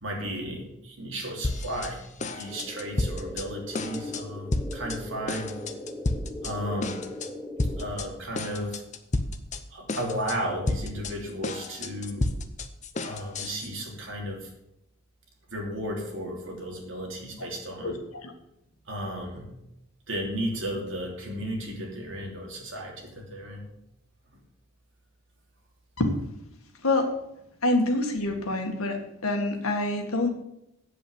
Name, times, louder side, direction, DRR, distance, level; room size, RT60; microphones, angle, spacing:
voice 1, 0.0-5.5 6.4-7.0 7.8-8.8 9.7-12.3 13.0-14.5 15.5-18.0 18.9-19.5 20.1-23.6, equal, 55° right, -1 dB, 3.2 m, -34 dB
sound 1, 1.4-1.9 2.2-3.5 3.7-4.2 4.5-5.0 5.3-6.5 6.8-7.3 7.6-8.1 8.4-9.6 9.9-10.4 10.7-13.7, left 2 dB, 35° left, 0.8 m, -31 dB
sound 2, 2.5-7.9, left 1 dB, ahead, 1.0 m, -39 dB
voice 2, 27.6-30.3, left 2 dB, 75° left, 4 dB, 1.9 m, -26 dB
8.4 x 7.8 x 8.0 m, 0.84 s
head